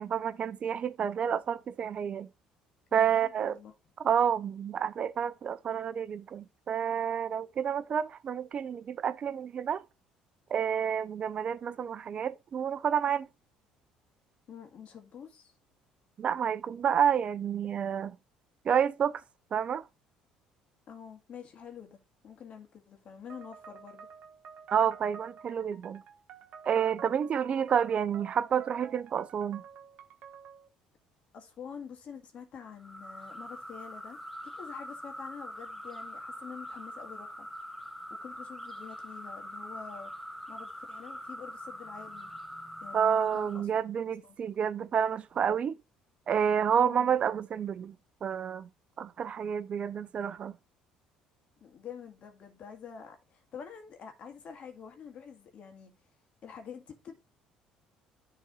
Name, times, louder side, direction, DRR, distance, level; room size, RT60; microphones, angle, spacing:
voice 1, 0.0-2.3 2.9-3.6 4.0-9.8 10.5-13.3 16.2-18.1 18.6-19.2 19.5-19.8 24.7-26.0 26.7-29.6 42.9-45.8 46.3-47.9 48.2-48.7 49.0-50.5, right 8 dB, 45° right, 0.5 m, -29 dB
voice 2, 2.9-3.7 14.5-15.5 20.9-24.1 31.3-34.2 34.5-37.5 38.2-40.1 40.5-42.3 42.8-43.7 44.0-44.4 46.8-47.1 51.6-55.9 56.4-57.1, left 7 dB, 50° left, 2.1 m, -47 dB
sound 1, 23.3-30.7, right 7 dB, 60° right, 1.2 m, -50 dB
sound 2, 32.8-43.7, equal, 5° left, 1.1 m, -43 dB
10.5 x 4.0 x 4.0 m
supercardioid pair, 70°, 3 cm